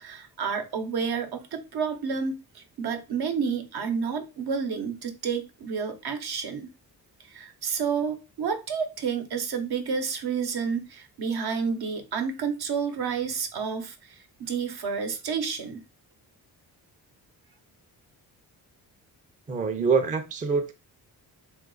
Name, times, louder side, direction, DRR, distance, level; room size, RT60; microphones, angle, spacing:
voice 1, 0.0-6.7 7.2-15.8, right 6 dB, 70° right, 0.8 m, -30 dB
voice 2, 19.5-20.7, right 5 dB, 20° right, 0.4 m, -25 dB
3.0 x 2.4 x 3.8 m
cardioid pair, 105°, 39 cm